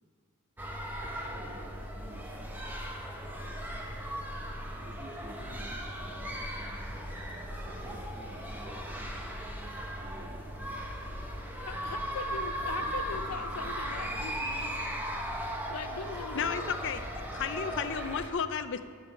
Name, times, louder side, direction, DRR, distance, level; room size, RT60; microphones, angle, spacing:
sound 1, 0.6-18.3, equal, 10° right, 0.9 m, -37 dB
voice 1, 1.0-2.6 2.9-4.0 4.7-7.0 7.6-9.1 10.0-10.7 12.7-13.5, right 1 dB, 50° right, 3.5 m, -51 dB
sound 2, 4.8-14.7, left 1 dB, 40° left, 1.1 m, -50 dB
voice 2, 11.6-15.1 15.7-16.7, left 5 dB, 90° left, 0.7 m, -41 dB
voice 3, 16.3-17.0 17.3-18.8, left 6 dB, 55° left, 0.5 m, -33 dB
13.0 x 6.9 x 7.0 m
head